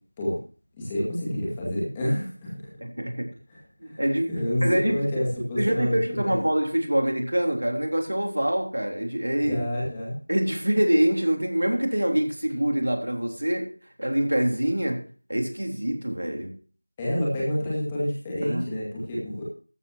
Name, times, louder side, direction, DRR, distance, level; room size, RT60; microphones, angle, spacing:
voice 1, 0.8-2.7 3.5-3.6 3.8-4.0 4.3-6.0 6.2-6.4 9.5-10.2 17.0-19.5, left 1 dB, 10° left, 2.2 m, -28 dB
voice 2, 2.8-3.3 3.8-4.3 4.6-5.0 5.4-9.6 10.3-13.7 14.0-15.0 15.3-16.6 18.4-18.6, right 1 dB, 70° right, 3.5 m, -25 dB
14.0 x 12.0 x 2.8 m
figure-of-eight pair, 175°, 0 cm